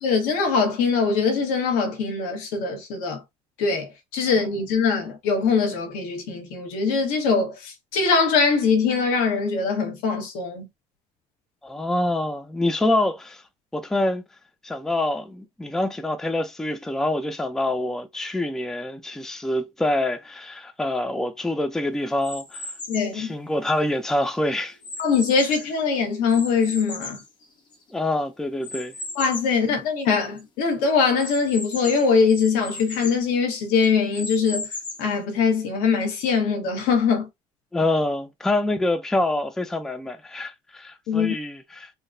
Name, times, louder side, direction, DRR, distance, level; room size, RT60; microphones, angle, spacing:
voice 1, 0.0-3.2 3.6-10.7 22.9-23.3 25.0-27.2 29.1-34.7 35.0-37.3 41.1-41.3, left 5 dB, 85° left, 1.2 m, -22 dB
voice 2, 11.6-13.4 13.7-14.2 14.6-22.6 23.1-24.8 27.9-28.9 37.7-41.9, left 1 dB, 5° left, 0.4 m, -26 dB
sound 1, 22.2-23.2 23.8-25.8 26.3-28.0 28.6-29.6 30.1-30.2 30.4-30.5 31.2-33.3 33.8-35.2, left 2 dB, 35° left, 1.0 m, -36 dB
3.8 x 2.2 x 2.5 m
cardioid pair, 145°, 13 cm